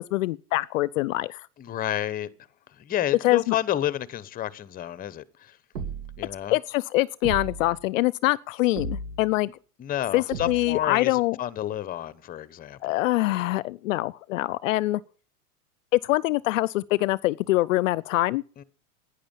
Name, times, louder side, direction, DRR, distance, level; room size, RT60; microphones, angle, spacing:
voice 1, 0.0-1.5 3.2-3.6 6.5-9.5 10.1-11.4 12.8-15.0 15.9-18.4, left 18 dB, 60° left, 0.5 m, -24 dB
voice 2, 1.6-2.3 2.8-5.6 6.2-6.6 9.8-13.0 18.6-18.7, left 12 dB, 20° left, 0.8 m, -30 dB
sound 1, 5.7-6.4 7.2-7.8 8.8-9.4 10.3-10.9, right 3 dB, 70° right, 2.7 m, -35 dB
11.5 x 9.9 x 7.2 m
hypercardioid pair, 130°, 46 cm